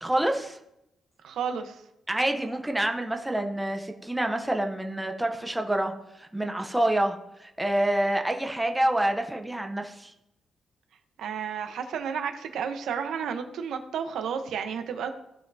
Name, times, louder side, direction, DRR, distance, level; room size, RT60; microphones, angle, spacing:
voice 1, 0.0-0.6 2.1-5.9 6.2-10.1, right 1 dB, 5° right, 4 dB, 0.7 m, -27 dB
voice 2, 1.2-1.8 11.2-15.1, right 7 dB, 85° right, 7 dB, 0.9 m, -32 dB
16.0 x 5.4 x 2.7 m, 0.84 s
wide cardioid pair, 175°, 0 cm